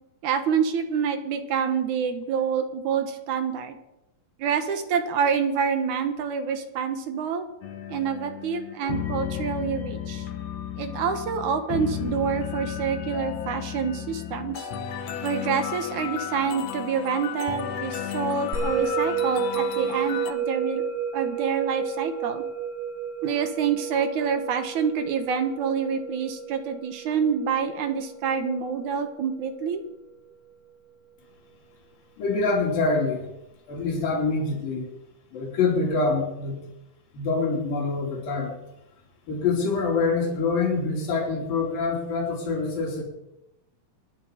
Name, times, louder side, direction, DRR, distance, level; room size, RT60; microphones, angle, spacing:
voice 1, 0.2-3.8 4.4-7.5 7.9-10.3 10.8-14.7 15.2-20.8 21.1-22.4 23.2-29.8, right 6 dB, 65° right, 7 dB, 2.5 m, -27 dB
sound 1, 7.6-20.3, left 9 dB, 65° left, 1.9 m, -33 dB
Musical instrument, 18.5-29.1, right 6 dB, 45° right, 5.2 m, -31 dB
voice 2, 32.2-33.3 33.7-34.9 35.3-36.6 37.1-38.5 39.3-43.0, left 4 dB, 85° left, 0 dB, 4.7 m, -25 dB
25.5 x 10.0 x 5.0 m, 0.93 s
omnidirectional pair, 3.9 m